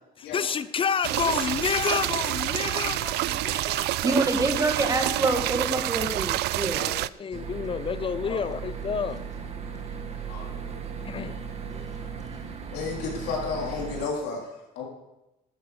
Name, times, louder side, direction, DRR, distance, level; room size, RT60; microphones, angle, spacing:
voice 1, 0.2-4.0 6.7-9.2 11.0-11.4, left 6 dB, 30° left, 0.6 m, -29 dB
sound 1, 1.0-7.1, right 17 dB, 75° right, 0.4 m, -28 dB
voice 2, 4.0-6.9, right 2 dB, 20° right, 2.2 m, -26 dB
sound 2, 7.3-14.1, right 6 dB, 40° right, 1.8 m, -37 dB
voice 3, 10.3-10.8 12.1-12.2 12.7-14.8, left 4 dB, 85° left, 3.9 m, -33 dB
13.0 x 8.4 x 6.7 m
cardioid pair, 110°, 17 cm